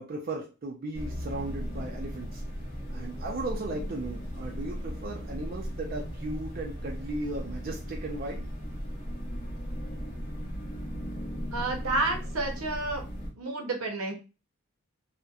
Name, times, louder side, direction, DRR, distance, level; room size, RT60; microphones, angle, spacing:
voice 1, 0.0-2.4 2.9-8.5, right 2 dB, 45° right, 0 dB, 0.4 m, -36 dB
sound 1, 0.9-13.3, equal, 40° left, 0.7 m, -37 dB
voice 2, 11.5-13.0 13.4-14.1, right 2 dB, 85° right, 3 dB, 0.7 m, -30 dB
2.7 x 2.1 x 2.3 m, 0.31 s
head